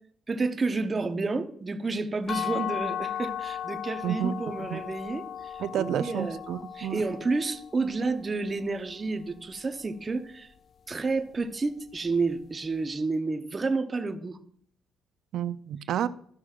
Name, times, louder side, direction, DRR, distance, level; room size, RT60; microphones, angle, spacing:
voice 1, 0.3-6.4 6.7-10.5 10.9-14.4, right 3 dB, 30° right, 0.7 m, -30 dB
sound 1, 2.3-8.1, left 10 dB, 45° left, 0.3 m, -36 dB
voice 2, 4.0-4.3 4.6-4.8 5.6-7.0 15.3-16.1, right 10 dB, 70° right, 0.4 m, -30 dB
13.0 x 6.1 x 2.4 m
cardioid pair, 100°, 0 cm